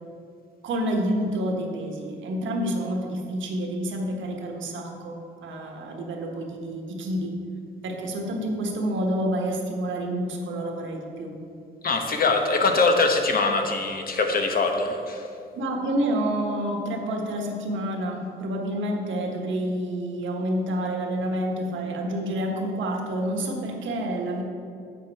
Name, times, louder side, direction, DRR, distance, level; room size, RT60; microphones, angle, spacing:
voice 1, 0.6-7.3 7.8-11.3 15.5-24.4, right 1 dB, 75° right, 2 dB, 1.4 m, -28 dB
voice 2, 11.8-15.3, left 3 dB, 50° left, 4 dB, 1.1 m, -23 dB
7.7 x 7.3 x 4.7 m, 2.5 s
cardioid pair, 90°, 20 cm